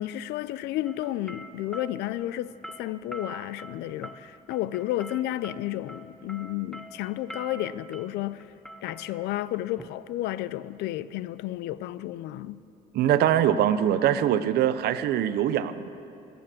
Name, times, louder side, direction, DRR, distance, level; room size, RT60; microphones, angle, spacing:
voice 1, 0.0-8.5 8.8-12.6, left 14 dB, 80° left, 0.4 m, -32 dB
sound 1, 0.8-10.7, right 1 dB, 5° left, 0.6 m, -45 dB
voice 2, 12.9-15.9, right 10 dB, 70° right, 0.7 m, -23 dB
19.5 x 7.0 x 7.4 m
cardioid pair, 110°, 17 cm